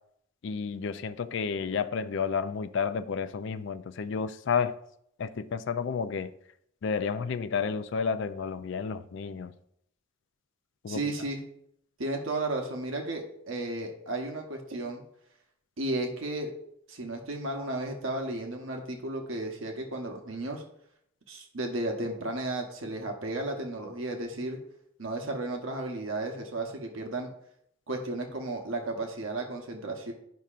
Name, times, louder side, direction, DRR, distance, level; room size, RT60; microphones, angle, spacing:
voice 1, 0.4-4.8 5.2-6.3 6.8-9.5 10.8-11.0, left 6 dB, 60° left, 0.4 m, -31 dB
voice 2, 10.9-11.4 12.0-15.0 15.8-16.5 16.9-20.6 21.3-24.6 25.0-27.3 27.9-30.1, right 2 dB, 80° right, 1.0 m, -34 dB
10.5 x 5.5 x 2.5 m
head